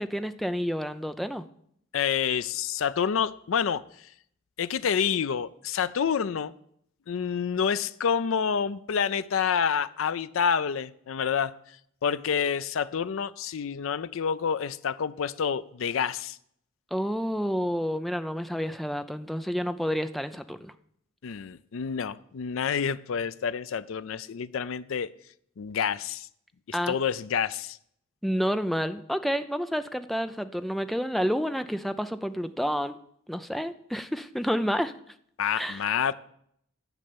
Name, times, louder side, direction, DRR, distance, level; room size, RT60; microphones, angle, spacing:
voice 1, 0.0-1.4 16.9-20.7 26.7-26.9 28.2-33.0 33.3-34.9 35.6-35.8, equal, ahead, 0.5 m, -29 dB
voice 2, 1.9-3.8 4.6-6.5 7.1-11.5 12.0-16.4 21.2-25.1 25.6-26.3 26.7-27.8 35.4-36.1, left 7 dB, 70° left, 0.4 m, -28 dB
11.0 x 5.5 x 8.5 m
head